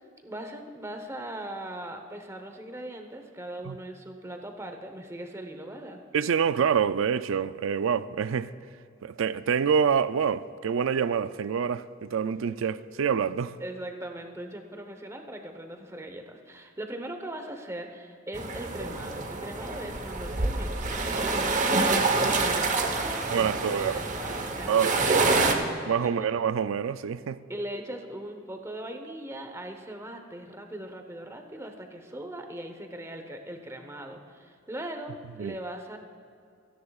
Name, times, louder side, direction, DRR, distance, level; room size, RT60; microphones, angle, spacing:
voice 1, 0.2-6.0 13.6-25.0 25.3-25.7 26.0-26.1 27.5-36.0, right 1 dB, 15° right, 0.9 m, -40 dB
voice 2, 6.1-8.5 9.0-13.6 23.3-24.0 24.7-25.5 25.9-27.4 35.4-35.6, right 7 dB, 80° right, 0.4 m, -26 dB
sound 1, 18.3-25.5, right 3 dB, 40° right, 1.0 m, -27 dB
27.5 x 10.0 x 2.4 m
head